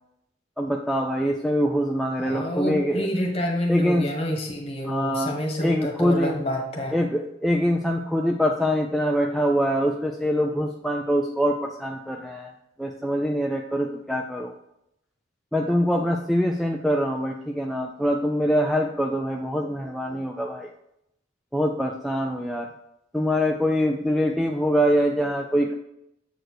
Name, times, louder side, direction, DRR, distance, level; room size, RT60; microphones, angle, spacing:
voice 1, 0.6-3.1 3.7-4.1 4.8-5.3 5.6-6.4 6.9-12.5 12.8-14.5 15.5-20.7 21.5-22.7 23.1-25.7, equal, ahead, 0 dB, 0.3 m, -24 dB
voice 2, 2.2-7.0, equal, 30° left, 0 dB, 1.5 m, -28 dB
7.9 x 4.3 x 4.6 m, 0.82 s
head